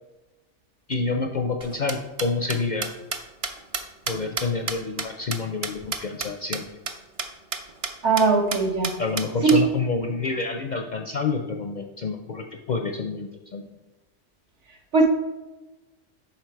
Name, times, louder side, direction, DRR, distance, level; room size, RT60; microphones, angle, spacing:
voice 1, 0.9-2.9 4.1-6.6 9.0-13.6, left 4 dB, 55° left, 4 dB, 0.5 m, -28 dB
sound 1, 1.6-6.3 6.5-6.6 6.9-7.0 7.2-7.3 7.5-7.9 8.2-8.3 8.5-9.6, right 4 dB, 40° right, 0.5 m, -30 dB
voice 2, 8.0-8.9 9.4-9.6 14.9-15.1, right 4 dB, 70° right, 1 dB, 1.5 m, -19 dB
6.0 x 5.2 x 4.5 m, 1.1 s
omnidirectional pair, 1.3 m